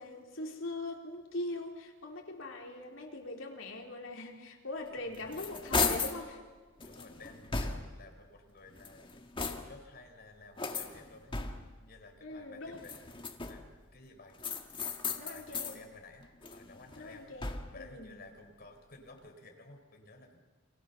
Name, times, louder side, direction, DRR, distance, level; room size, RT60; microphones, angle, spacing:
voice 1, 0.0-6.4 12.2-12.8 15.2-15.8 17.0-18.2, left 2 dB, 80° left, 1 dB, 4.0 m, -42 dB
sound 1, 4.9-6.2 6.8-8.1 8.7-9.9 10.6-11.8 12.7-13.8 14.4-15.8 16.2-17.9, left 4 dB, 25° left, 1.8 m, -36 dB
voice 2, 5.0-5.4 6.8-9.1 9.6-11.3 11.8-13.0 13.5-13.6 13.9-14.4 15.1-16.2 16.5-17.3 17.7-20.4, left 3 dB, 50° left, 4 dB, 4.3 m, -54 dB
29.5 x 24.5 x 6.9 m, 1.3 s
head